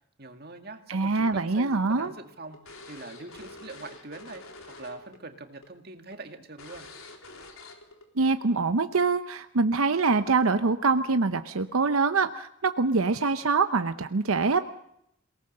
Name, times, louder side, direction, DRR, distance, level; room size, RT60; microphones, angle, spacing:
voice 1, 0.2-4.4 4.8-6.9, right 3 dB, 45° right, 6 dB, 2.1 m, -43 dB
voice 2, 0.9-2.1 8.2-14.6, right 4 dB, 85° right, 10 dB, 0.8 m, -24 dB
sound 1, 1.6-5.2 5.4-5.7 6.1-6.2 6.6-8.0, left 3 dB, 80° left, 3.8 m, -47 dB
27.5 x 18.5 x 6.6 m, 0.76 s
head